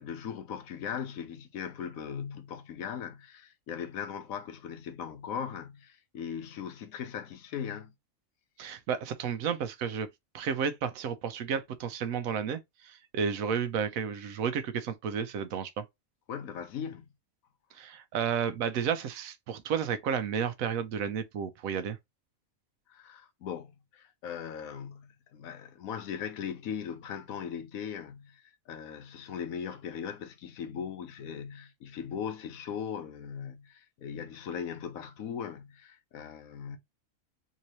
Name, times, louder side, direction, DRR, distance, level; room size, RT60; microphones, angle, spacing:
voice 1, 0.0-7.9 16.3-17.1 22.9-36.8, left 7 dB, 90° left, 1.2 m, -39 dB
voice 2, 8.6-10.1 10.3-15.8 17.7-22.0, right 7 dB, 90° right, 1.1 m, -32 dB
3.7 x 2.8 x 3.0 m
omnidirectional pair, 1.4 m